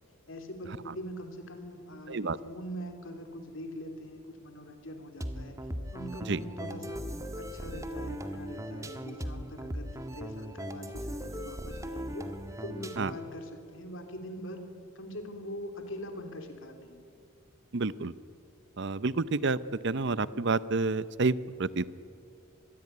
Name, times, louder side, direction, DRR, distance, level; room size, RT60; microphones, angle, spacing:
voice 1, 0.3-5.6 5.9-7.1 7.4-12.3 12.6-17.1, equal, 65° left, 6 dB, 3.6 m, -43 dB
sound 1, 5.2-13.3, equal, 15° right, 1.5 m, -38 dB
voice 2, 17.7-18.1 18.8-19.6 19.8-21.9, right 3 dB, 55° right, 17 dB, 0.7 m, -29 dB
26.5 x 21.5 x 9.6 m, 2.3 s
head